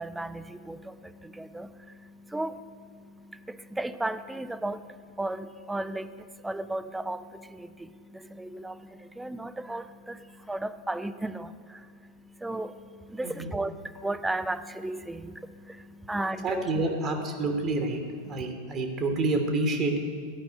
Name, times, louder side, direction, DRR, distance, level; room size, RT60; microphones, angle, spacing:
voice 1, 0.0-16.8 18.3-18.5, right 2 dB, 5° right, 13 dB, 0.4 m, -35 dB
voice 2, 16.4-18.0 18.3-20.0, right 2 dB, 30° right, 4 dB, 1.2 m, -28 dB
12.0 x 5.3 x 8.8 m, 2.1 s
figure-of-eight pair, 90°, 0 cm